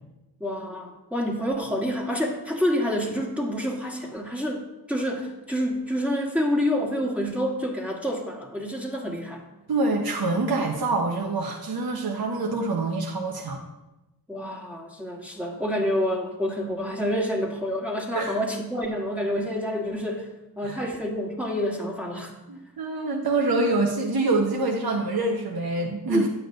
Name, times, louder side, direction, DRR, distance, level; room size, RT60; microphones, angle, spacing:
voice 1, 0.4-9.4 14.3-20.3 20.6-22.3 26.1-26.3, equal, 5° right, -1 dB, 1.4 m, -28 dB
voice 2, 9.7-13.6 18.1-18.3 20.6-20.8 22.5-26.3, right 2 dB, 65° right, 0 dB, 1.0 m, -25 dB
8.7 x 8.7 x 2.6 m, 0.99 s
cardioid pair, 40°, 39 cm